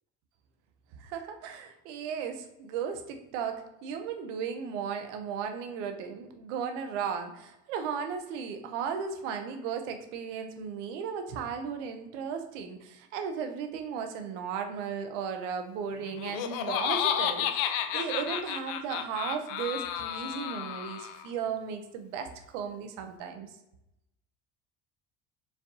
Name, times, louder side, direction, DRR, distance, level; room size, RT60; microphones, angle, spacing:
voice 1, 1.0-23.5, right 7 dB, 85° right, 7 dB, 0.6 m, -35 dB
Laughter, 16.0-21.3, left 9 dB, 70° left, 0.5 m, -32 dB
4.6 x 3.4 x 2.6 m, 0.88 s
supercardioid pair, 70°, 35 cm